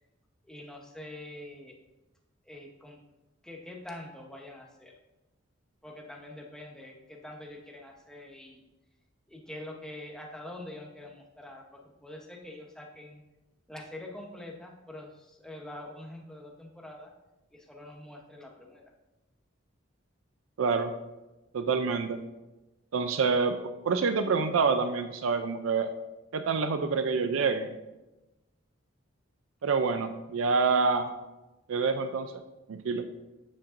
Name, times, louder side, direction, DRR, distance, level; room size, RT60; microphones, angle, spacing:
voice 1, 0.4-1.7 2.4-3.0 3.4-4.9 5.8-8.6 9.3-13.2 13.7-17.1 17.5-18.8, left 1 dB, 5° left, 0 dB, 0.9 m, -45 dB
voice 2, 20.6-20.9 21.5-22.2 22.9-23.5 23.8-25.9 26.3-27.7 29.6-31.1 31.7-32.3 32.7-33.0, right 4 dB, 80° right, 8 dB, 0.4 m, -27 dB
8.7 x 7.5 x 2.6 m, 1.0 s
head